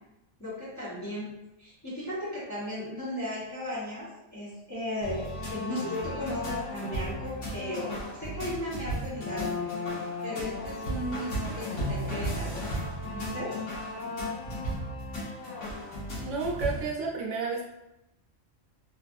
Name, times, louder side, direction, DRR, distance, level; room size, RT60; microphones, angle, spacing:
voice 1, 0.4-1.3 1.6-7.9 8.2-9.5 10.2-12.5 13.0-13.5, left 1 dB, 15° left, -11 dB, 1.0 m, -36 dB
sound 1, 5.0-16.9, left 1 dB, 80° left, 1.3 m, -34 dB
voice 2, 16.2-17.6, right 4 dB, 80° right, -2 dB, 1.0 m, -31 dB
3.2 x 2.4 x 2.5 m, 0.89 s
omnidirectional pair, 1.2 m